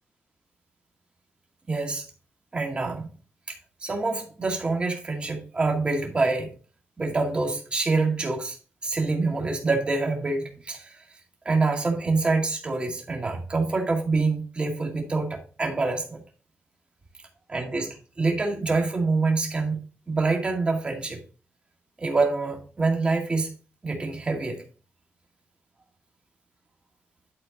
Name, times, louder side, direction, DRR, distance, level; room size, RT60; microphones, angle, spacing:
voice 1, 1.7-2.1 2.5-3.1 3.5-6.5 7.0-8.6 8.8-11.0 11.4-16.2 17.5-19.8 20.1-21.2 22.0-23.5 23.8-24.6, right 3 dB, 25° right, 1 dB, 2.1 m, -26 dB
12.0 x 4.4 x 4.1 m, 0.37 s
wide cardioid pair, 170°, 4 cm